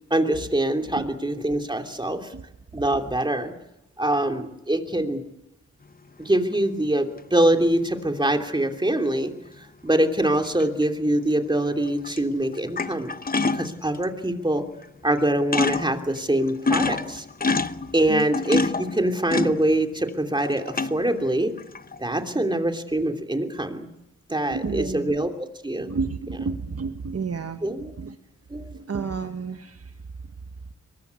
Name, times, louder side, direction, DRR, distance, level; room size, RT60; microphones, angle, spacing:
voice 1, 0.1-2.3 2.7-3.5 4.0-5.2 6.2-9.3 9.8-13.1 13.4-14.7 15.0-17.2 17.9-21.5 22.0-23.9 24.3-25.9 27.6-27.9 28.5-28.7, right 1 dB, 15° right, 4 dB, 3.0 m, -24 dB
sound 1, 6.5-6.6 10.6-10.8 11.8-12.2 12.5-14.0 14.8-14.9 15.2-15.3 15.5-16.0 16.4-20.1 20.4-21.1 21.6-22.1, left 3 dB, 30° left, 0.9 m, -26 dB
voice 2, 24.5-25.1 25.7-27.6 28.0-28.1 28.7-29.7, right 5 dB, 55° right, 7 dB, 1.3 m, -30 dB
23.0 x 21.5 x 8.4 m, 0.89 s
wide cardioid pair, 75°, 29 cm